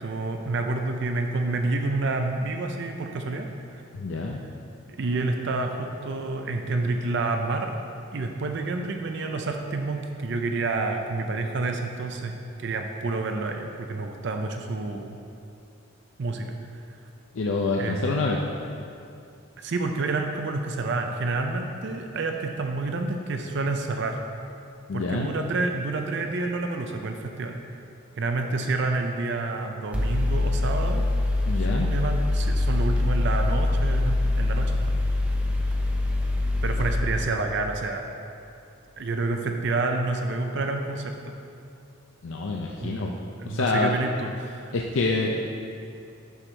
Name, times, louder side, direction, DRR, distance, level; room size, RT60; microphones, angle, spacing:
voice 1, 0.0-3.8 4.9-7.8 8.1-12.3 12.6-15.2 16.2-16.6 17.8-18.3 19.6-24.2 24.9-27.6 28.2-31.1 31.5-35.0 36.6-38.0 39.0-41.3 42.8-43.0 43.4-44.7, right 3 dB, 55° right, 4 dB, 0.5 m, -29 dB
voice 2, 3.9-4.4 17.3-18.4 24.9-25.3 31.5-31.9 42.2-43.1 43.4-43.9 44.7-45.4, left 3 dB, 70° left, 0 dB, 0.5 m, -26 dB
Mechanical fan, 29.9-36.9, left 2 dB, 5° right, 0.5 m, -24 dB
9.9 x 6.2 x 3.3 m, 2.6 s
head